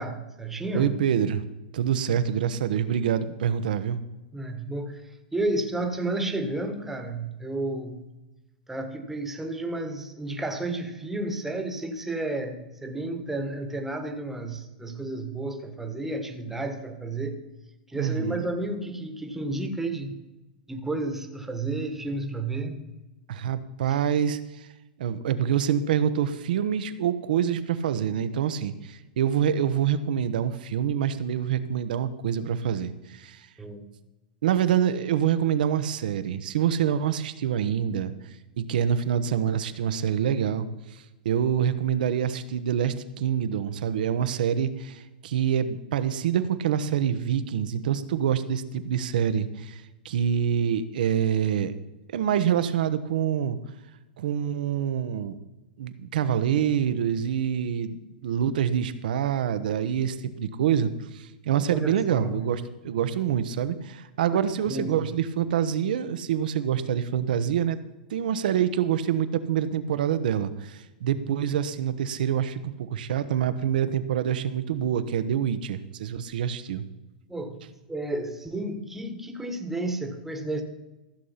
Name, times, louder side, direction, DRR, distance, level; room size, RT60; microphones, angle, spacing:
voice 1, 0.0-1.0 4.3-8.1 8.7-17.4 17.9-20.3 20.7-22.9 23.9-24.0 33.6-33.9 61.7-62.5 64.3-64.4 64.7-65.1 71.1-71.2 77.3-80.6, right 2 dB, 5° right, 6 dB, 1.4 m, -32 dB
voice 2, 0.7-1.4 1.7-4.0 17.9-18.5 23.3-24.7 25.0-33.5 34.4-38.1 38.6-51.7 52.1-53.6 54.2-55.4 55.8-67.8 68.1-76.8, right 9 dB, 70° right, 12 dB, 1.0 m, -26 dB
14.5 x 6.6 x 5.7 m, 1.1 s
hypercardioid pair, 125°, 5 cm